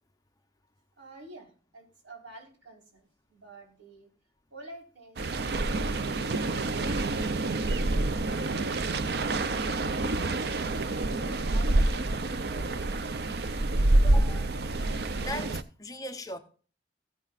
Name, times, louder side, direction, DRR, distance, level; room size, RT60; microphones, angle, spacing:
voice 1, 1.0-4.1 4.5-7.9 8.3-9.6 10.2-11.8 12.0-13.8, right 2 dB, 90° right, 4.2 m, -51 dB
sound 1, 5.2-15.6, right 2 dB, 60° right, 0.5 m, -27 dB
voice 2, 14.0-14.5 15.2-16.4, left 1 dB, 20° left, 0.8 m, -39 dB
15.5 x 9.7 x 2.5 m
head